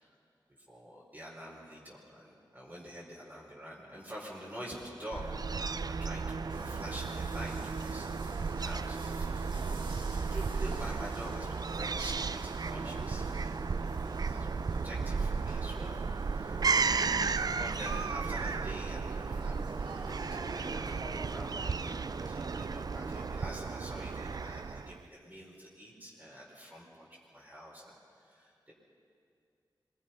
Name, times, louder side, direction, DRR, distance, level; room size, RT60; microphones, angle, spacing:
voice 1, 0.7-5.3 5.7-8.1 8.4-9.4 10.3-13.6 13.9-28.7, equal, 25° right, -6 dB, 4.5 m, -47 dB
Fowl / Gull seagull, 5.1-25.0, right 5 dB, 55° right, 0.4 m, -34 dB
sound 1, 6.5-23.2, right 2 dB, 80° right, 2.7 m, -48 dB
26.0 x 20.5 x 5.7 m, 2.4 s
wide cardioid pair, 100°, 8 cm